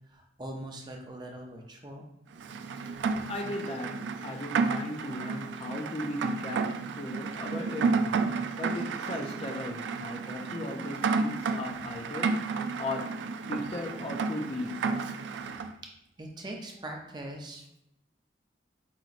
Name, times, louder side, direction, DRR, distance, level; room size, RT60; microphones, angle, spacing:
voice 1, 0.1-2.1 16.2-17.8, right 1 dB, 25° right, 0.5 m, -41 dB
Rain, 2.4-15.7, right 4 dB, 85° right, 0.3 m, -32 dB
voice 2, 3.3-13.2 13.5-15.0, left 2 dB, 35° left, 0.4 m, -37 dB
4.9 x 2.9 x 2.5 m
head